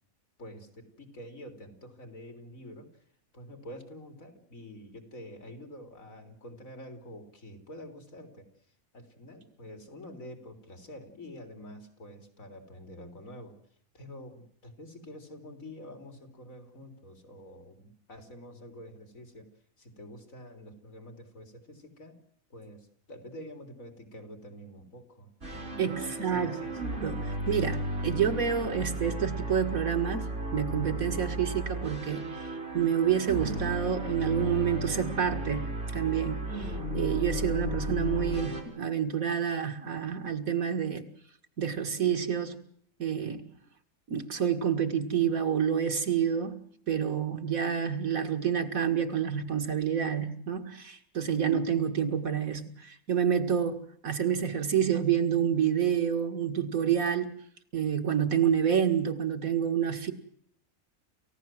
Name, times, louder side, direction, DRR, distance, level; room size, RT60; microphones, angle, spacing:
voice 1, 0.4-3.0 3.3-8.5 8.9-13.6 13.9-19.5 19.8-22.2 22.5-27.0, equal, 70° left, 6 dB, 4.1 m, -47 dB
sound 1, 25.4-38.6, right 1 dB, 60° right, 5.8 m, -34 dB
voice 2, 25.8-26.6 27.0-35.7 35.9-41.1 41.6-42.6 43.0-43.5 44.1-57.3 57.7-60.1, right 8 dB, 85° right, 6 dB, 2.4 m, -28 dB
28.5 x 15.5 x 7.7 m, 0.64 s
omnidirectional pair, 1.4 m